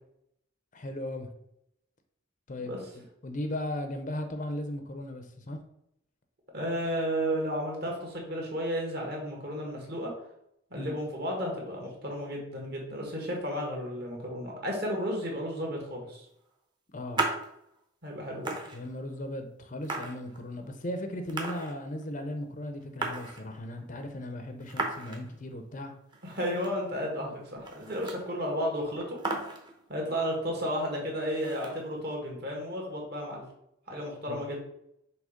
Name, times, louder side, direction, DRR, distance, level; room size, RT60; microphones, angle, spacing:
voice 1, 0.7-1.3 2.5-5.6 10.8-10.9 16.9-17.2 18.7-25.9 34.3-34.4, left 1 dB, 40° left, 6 dB, 0.6 m, -37 dB
voice 2, 6.5-10.1 10.7-16.3 18.0-18.5 26.2-29.2 29.9-33.4 33.9-34.6, equal, 50° right, -1 dB, 1.9 m, -33 dB
sound 1, 17.1-17.5 18.1-18.2 18.4-19.2 19.8-20.8 21.3-22.1 22.3-22.4 22.6-23.8 24.6-25.3 25.7-25.8 26.1-26.9 27.2-27.3 27.5-28.4 28.7-28.8 29.0-29.9 31.4-32.1, right 3 dB, 20° right, 0.9 m, -36 dB
6.4 x 3.0 x 5.1 m, 0.77 s
head